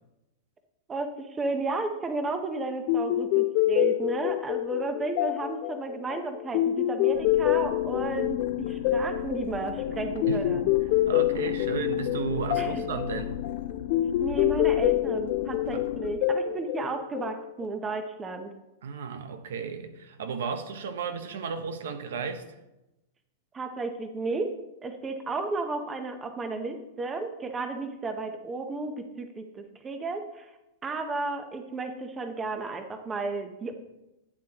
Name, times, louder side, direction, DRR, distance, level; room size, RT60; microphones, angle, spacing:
voice 1, 0.9-10.7 12.6-12.8 14.2-18.5 23.5-24.6 24.8-30.5 30.8-33.7, right 3 dB, 15° right, 7 dB, 0.8 m, -33 dB
sound 1, 2.9-17.6, left 13 dB, 50° left, 0.5 m, -27 dB
sound 2, 7.1-16.2, left 11 dB, 70° left, 0.9 m, -36 dB
voice 2, 10.2-10.6 11.1-13.3 15.7-15.8 18.8-22.4, right 6 dB, 85° right, 9 dB, 0.9 m, -34 dB
11.5 x 8.7 x 2.9 m, 0.96 s
supercardioid pair, 145°, 0 cm